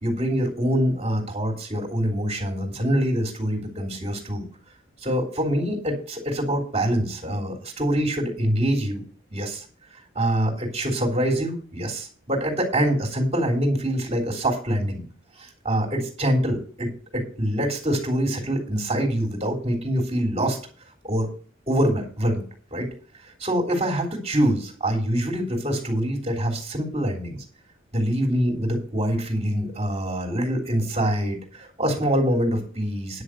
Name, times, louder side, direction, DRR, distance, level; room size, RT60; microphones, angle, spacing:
voice 1, 0.0-4.5 5.0-9.0 9.3-9.6 10.2-15.0 15.4-20.6 21.0-21.3 21.7-22.4 22.7-22.9 23.4-27.4 27.9-33.2, equal, 30° right, 0 dB, 3.4 m, -25 dB
10.5 x 6.5 x 6.3 m, 0.42 s
head